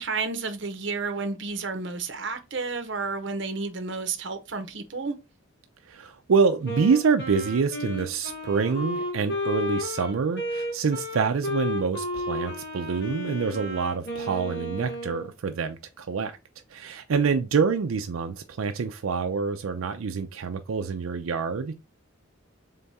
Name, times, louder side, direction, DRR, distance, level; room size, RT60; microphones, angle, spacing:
voice 1, 0.0-5.2, right 4 dB, 60° right, 0.8 m, -31 dB
voice 2, 5.9-16.4 16.7-21.8, right 5 dB, 90° right, 0.5 m, -26 dB
Wind instrument woodwind instrument, 6.6-15.3, left 1 dB, 55° left, 2.0 m, -33 dB
3.8 x 3.5 x 4.0 m
head